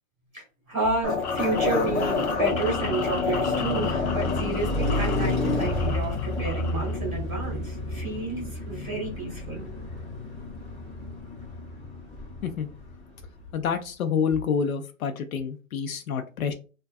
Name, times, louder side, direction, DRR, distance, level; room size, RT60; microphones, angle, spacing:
voice 1, 0.3-9.6, right 2 dB, ahead, -20 dB, 0.3 m, -30 dB
sound 1, 1.0-7.0, left 4 dB, 55° left, 0.8 m, -29 dB
Car passing by, 1.0-13.2, left 2 dB, 20° left, 0.8 m, -31 dB
voice 2, 13.5-16.5, left 6 dB, 80° left, 7 dB, 0.6 m, -28 dB
2.3 x 2.2 x 2.5 m, 0.34 s
hypercardioid pair, 150°, 41 cm